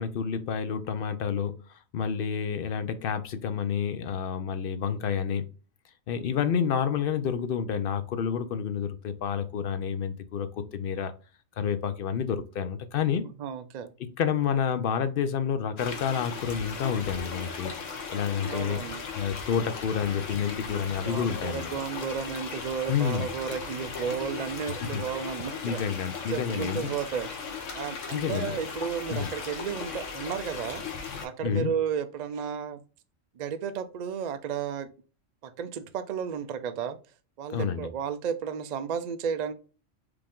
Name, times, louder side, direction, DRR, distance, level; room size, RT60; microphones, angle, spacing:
voice 1, 0.0-5.4 6.1-11.1 11.6-13.2 14.0-18.8 19.1-21.7 22.9-23.3 24.9-25.0 25.6-26.9 28.1-28.6 29.1-29.3 31.4-31.7 37.5-37.9, left 7 dB, 60° left, 0.6 m, -29 dB
voice 2, 13.2-13.9 18.4-19.0 21.0-25.8 26.3-27.3 27.7-30.8 31.2-32.8 33.4-34.9 35.4-37.0 37.4-39.5, right 7 dB, 65° right, 0.4 m, -33 dB
sound 1, 15.8-31.3, left 5 dB, 85° left, 1.3 m, -37 dB
4.8 x 2.5 x 3.6 m
omnidirectional pair, 1.3 m